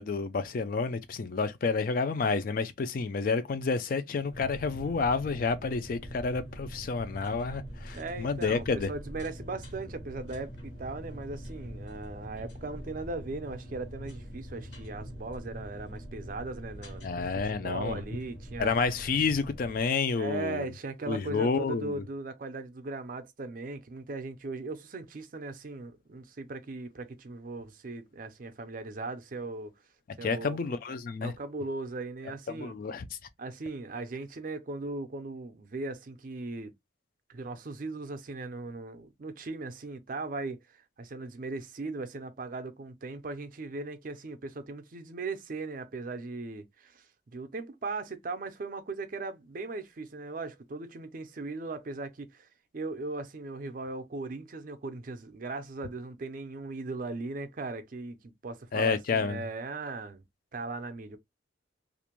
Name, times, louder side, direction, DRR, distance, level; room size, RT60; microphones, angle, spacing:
voice 1, 0.0-8.9 17.0-18.0 18.6-20.6 21.1-22.0 30.2-31.3 32.5-33.1 58.7-59.4, left 4 dB, 45° left, 0.4 m, -30 dB
sound 1, 4.3-19.8, equal, 65° left, 1.1 m, -43 dB
voice 2, 7.9-18.7 20.1-29.7 30.2-30.6 31.2-32.7 33.4-36.7 37.3-52.5 52.7-60.2 60.5-61.2, right 3 dB, 45° right, 0.5 m, -38 dB
2.5 x 2.1 x 2.9 m
head